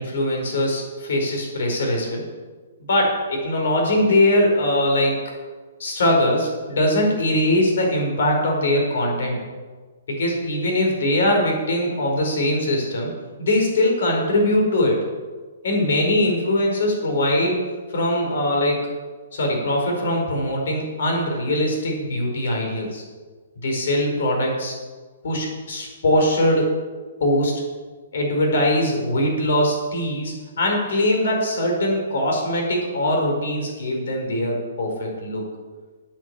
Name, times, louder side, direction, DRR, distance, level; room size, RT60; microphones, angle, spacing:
voice 1, 0.0-2.2 2.9-5.2 5.8-9.4 10.1-13.1 13.4-15.1 15.6-17.6 17.9-18.9 19.3-23.0 23.6-24.7 25.2-26.8 27.2-27.6 28.1-35.4, left 1 dB, 70° left, 1 dB, 4.9 m, -21 dB
9.5 x 8.6 x 8.4 m, 1.4 s
hypercardioid pair, 150°, 0 cm